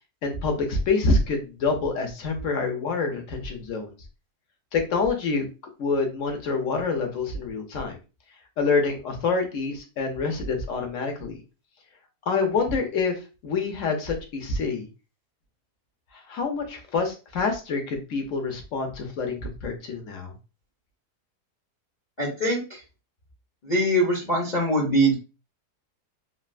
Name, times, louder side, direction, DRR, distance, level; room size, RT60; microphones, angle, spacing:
voice 1, 0.2-3.9 4.7-5.4 5.8-8.0 8.6-11.4 12.3-14.9 16.3-20.3, left 4 dB, 60° left, 3 dB, 1.0 m, -26 dB
voice 2, 22.2-22.8 23.6-25.2, right 1 dB, 40° left, -5 dB, 0.6 m, -23 dB
3.3 x 2.4 x 2.4 m, 0.31 s
omnidirectional pair, 1.7 m